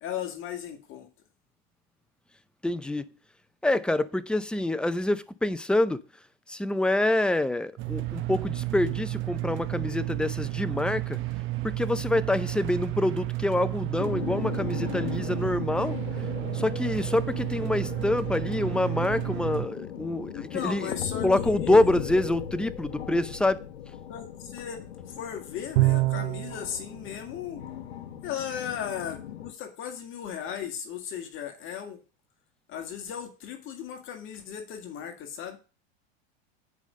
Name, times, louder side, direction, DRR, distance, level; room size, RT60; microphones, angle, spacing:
voice 1, 0.0-1.1 20.3-21.9 24.1-27.6 28.2-32.0 32.7-35.6, left 8 dB, 40° left, 2.0 m, -36 dB
voice 2, 2.6-3.1 3.6-6.0 6.5-11.2 11.6-16.0 16.5-20.9 21.2-23.6, left 1 dB, 5° left, 0.5 m, -26 dB
sound 1, 7.8-19.7, right 17 dB, 40° right, 0.9 m, -32 dB
sound 2, 14.0-29.5, left 10 dB, 90° left, 1.1 m, -38 dB
Bowed string instrument, 25.8-26.6, right 19 dB, 65° right, 0.6 m, -23 dB
8.3 x 5.1 x 6.5 m
hypercardioid pair, 110°, 32 cm